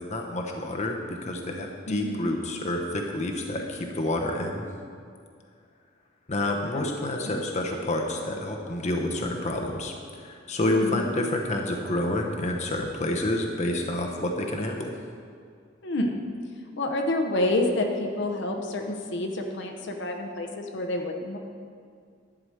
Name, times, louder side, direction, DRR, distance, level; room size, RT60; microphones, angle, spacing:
voice 1, 0.0-4.7 6.3-9.9 10.2-14.9, left 1 dB, 35° left, 1 dB, 0.8 m, -28 dB
voice 2, 1.9-2.3 6.7-7.4 10.6-11.0 15.8-16.2 16.8-21.4, left 1 dB, 65° left, 3 dB, 0.9 m, -28 dB
11.5 x 4.9 x 7.8 m, 2.2 s
head